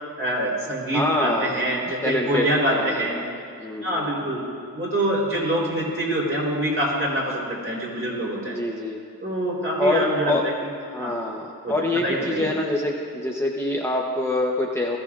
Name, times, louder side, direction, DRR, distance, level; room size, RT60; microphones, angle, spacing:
voice 1, 0.2-3.1 3.8-4.4 4.7-8.6 9.2-10.3 11.0-11.1 11.6-11.7 12.0-12.5, right 1 dB, 35° right, -5 dB, 3.5 m, -25 dB
voice 2, 0.9-1.7 2.0-3.2 3.6-4.3 8.4-9.0 9.8-10.5 10.8-15.0, left 1 dB, 5° left, -1 dB, 0.8 m, -25 dB
20.0 x 14.0 x 2.4 m, 2.4 s
wide cardioid pair, 135°, 36 cm